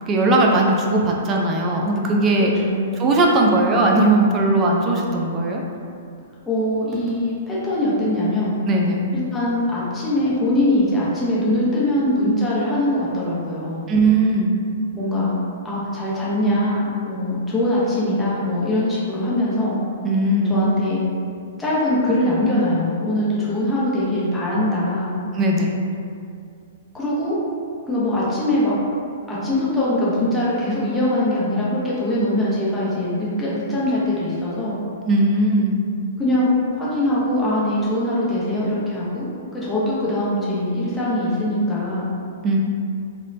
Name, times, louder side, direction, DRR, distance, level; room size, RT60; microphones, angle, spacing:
voice 1, 0.1-2.5 3.0-5.6 8.7-9.1 13.9-14.5 20.0-20.6 25.3-25.7 35.1-35.7 42.4-42.6, right 2 dB, 20° right, -1 dB, 0.3 m, -18 dB
voice 2, 2.4-3.0 6.5-8.6 9.1-13.9 14.9-15.4 15.6-19.8 20.5-21.0 21.6-25.1 26.9-27.4 27.9-28.7 29.3-34.8 36.2-42.1, left 1 dB, 10° left, -9 dB, 0.7 m, -22 dB
3.0 x 2.0 x 2.5 m, 2.4 s
figure-of-eight pair, 110°, 0 cm